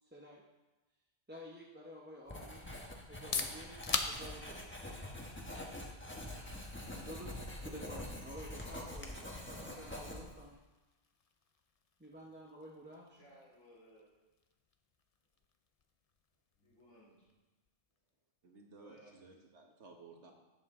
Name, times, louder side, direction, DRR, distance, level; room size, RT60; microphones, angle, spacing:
voice 1, 0.0-0.4 1.3-2.8 3.1-4.6 6.9-10.6 12.0-13.2, equal, 10° right, -4 dB, 0.8 m, -51 dB
Writing, 2.3-10.5, left 1 dB, 10° left, 1.2 m, -45 dB
sound 1, 3.0-18.7, left 5 dB, 40° left, 0.6 m, -47 dB
voice 2, 13.2-14.1 16.6-17.3 18.8-19.3, equal, 85° left, -9 dB, 3.7 m, -61 dB
voice 3, 18.4-20.3, right 3 dB, 70° right, 2 dB, 1.6 m, -56 dB
11.5 x 8.0 x 3.7 m, 1.1 s
omnidirectional pair, 1.2 m